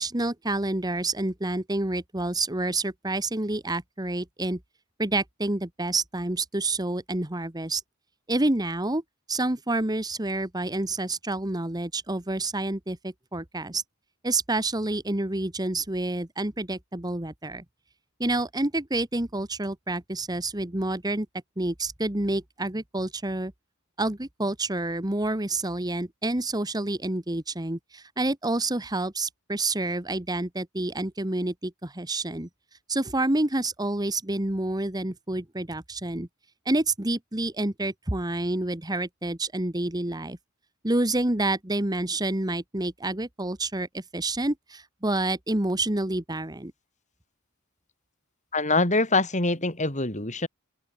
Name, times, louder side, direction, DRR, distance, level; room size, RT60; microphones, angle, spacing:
voice 1, 0.0-4.6 5.0-7.8 8.3-9.0 9.3-13.8 14.2-17.6 18.2-21.3 21.6-23.5 24.0-32.5 32.9-36.3 36.6-40.4 40.8-46.7, right 2 dB, 20° right, 1.5 m, -28 dB
voice 2, 48.5-50.5, left 3 dB, 35° left, 5.3 m, -24 dB
open air
head